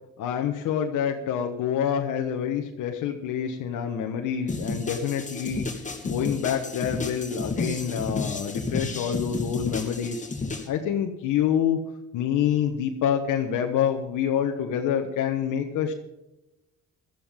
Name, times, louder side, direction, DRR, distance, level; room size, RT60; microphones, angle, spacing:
voice 1, 0.2-5.7 6.0-10.2 10.7-11.8 12.1-15.9, left 8 dB, 90° left, 2 dB, 1.4 m, -27 dB
sound 1, 4.5-10.7, left 3 dB, 25° left, 2.9 m, -32 dB
18.0 x 13.5 x 3.7 m, 0.94 s
cardioid pair, 90°, 30 cm